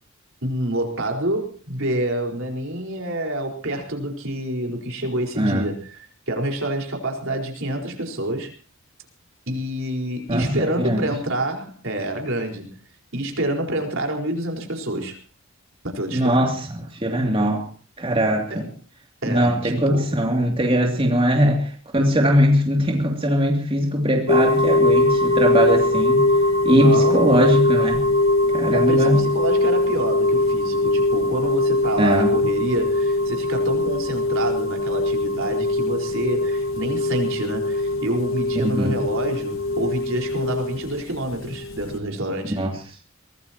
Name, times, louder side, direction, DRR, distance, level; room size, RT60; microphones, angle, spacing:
voice 1, 0.4-6.0 6.3-8.5 9.5-12.8 13.1-15.2 15.8-16.5 18.5-18.6 19.2-20.1 26.7-27.5 28.7-42.6, right 1 dB, 65° right, 4.7 m, -27 dB
voice 2, 5.4-5.7 10.3-11.1 16.1-17.7 18.0-18.7 19.3-26.3 26.6-28.1 28.5-29.2 32.0-32.3 38.6-39.0 42.5-42.8, equal, 25° right, 2.8 m, -20 dB
sound 1, 24.3-42.0, left 2 dB, 70° left, 1.8 m, -21 dB
23.5 x 19.0 x 3.0 m
head